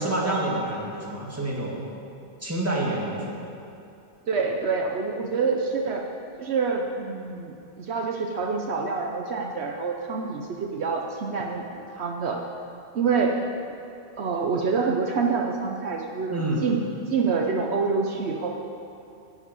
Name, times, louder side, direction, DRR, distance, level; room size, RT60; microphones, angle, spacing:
voice 1, 0.0-1.8 2.4-3.2 16.3-16.6, right 1 dB, 15° right, -4 dB, 2.2 m, -27 dB
voice 2, 4.3-6.0 6.4-12.4 12.9-13.4 14.2-16.8 17.1-18.6, right 4 dB, 70° right, 2 dB, 1.1 m, -27 dB
12.0 x 7.5 x 8.2 m, 2.6 s
omnidirectional pair, 1.2 m